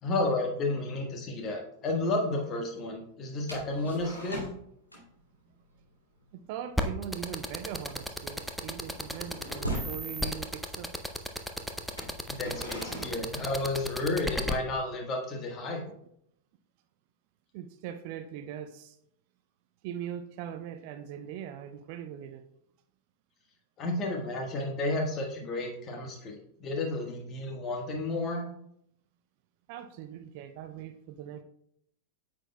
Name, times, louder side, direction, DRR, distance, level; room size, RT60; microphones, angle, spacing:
voice 1, 0.0-4.6 12.3-15.8 23.8-28.5, left 2 dB, 30° left, 3 dB, 1.4 m, -32 dB
sound 1, 3.5-4.6 4.9-5.2 5.5-5.8 6.2-6.4 6.7-7.0 7.4-10.0 10.9-11.0 11.8-14.1, right 1 dB, 85° left, 2.4 m, -40 dB
voice 2, 6.3-10.9 15.9-16.0 17.5-19.0 19.8-22.4 29.7-31.4, right 10 dB, 45° right, 9 dB, 0.5 m, -41 dB
sound 2, 6.8-14.5, equal, ahead, 0.5 m, -33 dB
8.8 x 6.0 x 2.2 m, 0.73 s
figure-of-eight pair, 90°, 0 cm